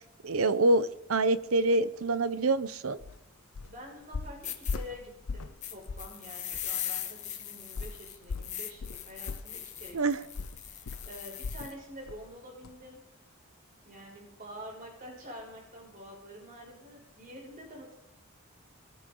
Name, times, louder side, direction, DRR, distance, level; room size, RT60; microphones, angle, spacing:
voice 1, 0.2-3.0 9.9-10.2, right 2 dB, 80° right, 15 dB, 0.8 m, -26 dB
sound 1, 3.0-3.2 3.5-3.8 4.1-5.6 5.9-6.1 6.5-6.6 7.8-11.8 12.1-12.3 12.6-12.7, left 4 dB, 85° left, 0.6 m, -38 dB
voice 2, 3.7-10.0 10.6-13.0 13.8-17.9, equal, 40° right, -1 dB, 6.1 m, -47 dB
sound 2, 4.0-4.1 4.4-4.8 5.6-11.7, left 10 dB, 35° left, 1.7 m, -40 dB
23.0 x 14.5 x 3.9 m, 0.89 s
head